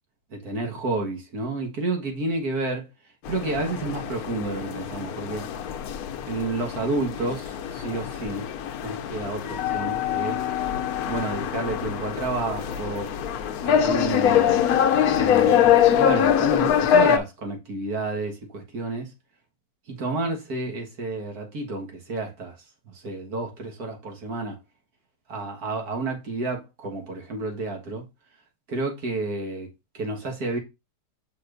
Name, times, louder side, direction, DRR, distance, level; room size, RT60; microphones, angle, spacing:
voice 1, 0.3-2.9 3.3-5.5 6.3-8.5 8.8-10.4 11.1-13.1 13.6-14.6 15.1-19.1 19.9-22.6 22.9-24.6 25.3-28.0 28.7-29.7 29.9-30.6, right 2 dB, 70° right, 2.0 m, -30 dB
sound 1, 3.3-17.2, left 9 dB, 75° left, 1.1 m, -23 dB
6.2 x 5.9 x 2.5 m
omnidirectional pair, 1.7 m